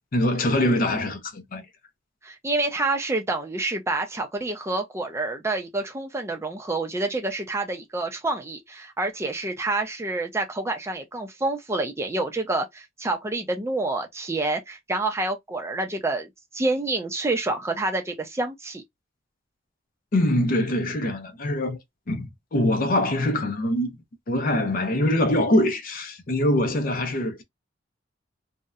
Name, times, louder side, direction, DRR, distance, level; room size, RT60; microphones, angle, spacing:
voice 1, 0.1-1.6 20.1-21.8 22.1-23.9 24.3-27.4, left 1 dB, 45° left, 0.5 m, -23 dB
voice 2, 2.2-16.3 16.5-18.8, right 2 dB, 15° right, 0.4 m, -28 dB
2.6 x 2.0 x 2.3 m
head